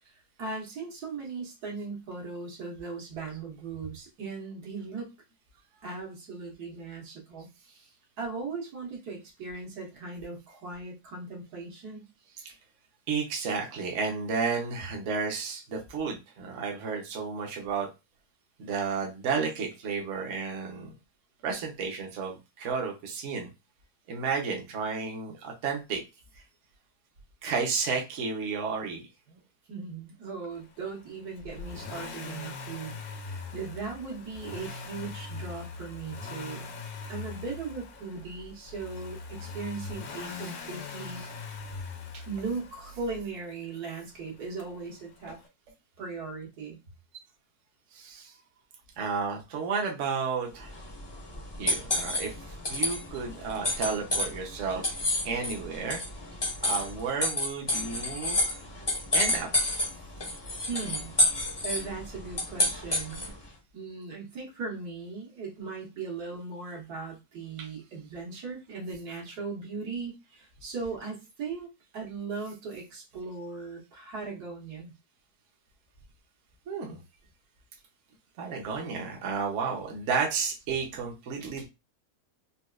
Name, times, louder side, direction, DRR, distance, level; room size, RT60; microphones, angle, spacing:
voice 1, 0.4-5.1 5.8-7.9 8.2-12.1 29.7-36.7 37.1-41.5 42.3-45.4 46.0-46.8 60.7-61.1 61.6-63.3 63.7-71.7 71.9-74.9, right 4 dB, 75° right, -1 dB, 1.6 m, -38 dB
voice 2, 13.1-17.9 18.6-20.9 21.4-23.5 24.1-26.0 27.4-29.4 40.3-40.5 40.8-41.3 42.1-42.2 47.9-48.3 49.0-50.7 51.6-52.3 52.7-55.0 55.2-56.0 56.6-58.5 59.1-59.5 67.6-67.7 76.7-77.0 78.4-81.7, right 5 dB, 60° right, 0 dB, 0.9 m, -32 dB
Accelerating revving vroom, 31.4-43.3 44.6-44.7, left 4 dB, 75° left, 1.1 m, -41 dB
sound 1, 50.6-63.4, left 1 dB, 30° left, 0.4 m, -30 dB
4.0 x 2.3 x 2.3 m, 0.25 s
omnidirectional pair, 1.7 m